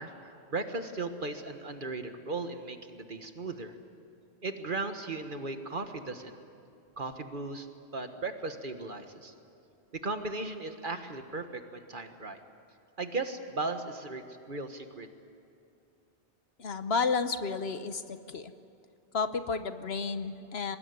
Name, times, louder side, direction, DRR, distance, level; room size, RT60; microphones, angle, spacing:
voice 1, 0.0-3.8 4.4-6.3 7.0-7.7 7.9-9.3 9.9-12.4 13.0-15.1, right 3 dB, 45° right, 7 dB, 1.6 m, -37 dB
voice 2, 16.6-18.5 19.1-20.8, left 4 dB, 60° left, 10 dB, 1.2 m, -31 dB
24.0 x 20.5 x 9.6 m, 2.6 s
omnidirectional pair, 1.2 m